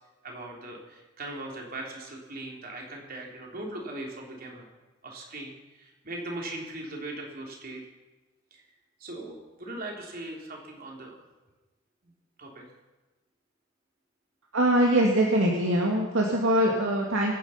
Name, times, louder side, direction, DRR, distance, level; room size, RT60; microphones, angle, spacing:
voice 1, 0.2-4.7 5.0-7.8 8.5-8.6 9.0-11.2 12.0-12.1 12.4-12.6, right 2 dB, 50° right, 0 dB, 3.5 m, -39 dB
voice 2, 14.5-17.3, right 1 dB, 85° right, -1 dB, 2.1 m, -23 dB
24.0 x 9.6 x 5.8 m, 1.1 s
head